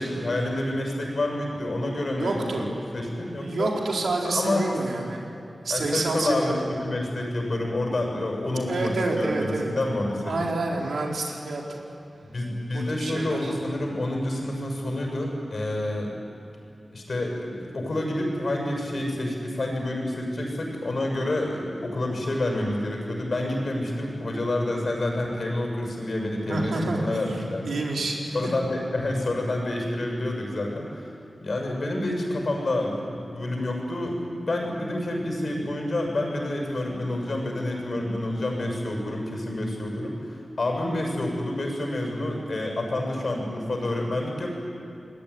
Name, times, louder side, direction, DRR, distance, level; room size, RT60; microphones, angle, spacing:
voice 1, 0.0-2.7 2.9-3.7 4.2-4.6 5.7-10.5 12.2-16.2 16.9-27.8 28.3-31.1 31.4-44.5, left 1 dB, 50° left, 1 dB, 7.1 m, -28 dB
voice 2, 2.2-2.7 3.4-5.3 5.6-6.7 8.7-9.7 10.3-11.8 12.7-13.5 26.5-27.2 27.6-28.2, right 2 dB, 90° right, -1 dB, 4.6 m, -28 dB
28.5 x 21.0 x 9.9 m, 2.8 s
wide cardioid pair, 115°, 0 cm